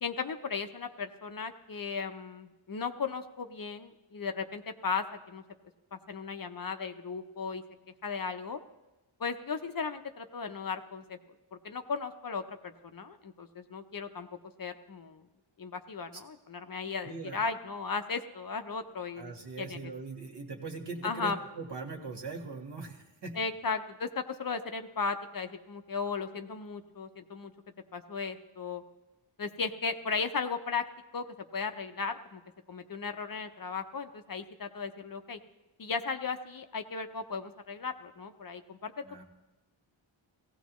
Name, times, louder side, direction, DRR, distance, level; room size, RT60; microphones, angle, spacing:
voice 1, 0.0-5.4 5.9-7.6 8.0-8.6 9.2-11.2 11.5-14.3 14.6-15.2 15.6-19.8 21.0-21.4 23.3-27.5 27.9-28.8 29.4-30.9 31.1-31.2 31.5-32.4 32.7-35.4 35.8-39.2, left 5 dB, 45° left, 7 dB, 0.7 m, -36 dB
voice 2, 17.0-17.4 19.2-23.4 39.0-39.2, right 3 dB, 55° right, 2 dB, 1.8 m, -41 dB
16.5 x 16.0 x 3.1 m, 1.1 s
wide cardioid pair, 80°, 48 cm